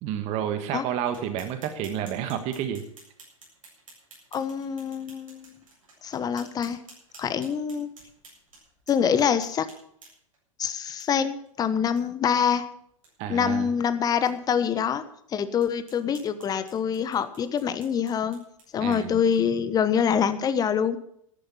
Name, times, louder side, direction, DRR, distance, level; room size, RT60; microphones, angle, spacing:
voice 1, 0.0-2.8 13.2-13.7 18.8-19.2, right 9 dB, 40° right, 9 dB, 1.6 m, -30 dB
sound 1, 1.0-10.4 11.0-11.1 11.5-11.6 12.0-12.1 12.4-12.5 12.9-13.1 13.6-13.7 14.3-14.4 14.9-15.0 15.6-19.6, right 2 dB, 75° right, 7.8 m, -53 dB
voice 2, 4.3-5.5 6.0-6.8 7.2-7.9 8.9-9.7 10.6-12.7 13.3-15.0 15.3-18.4 18.7-21.0, left 7 dB, 20° left, 12 dB, 1.1 m, -25 dB
13.5 x 11.0 x 7.1 m, 0.68 s
figure-of-eight pair, 95°, 17 cm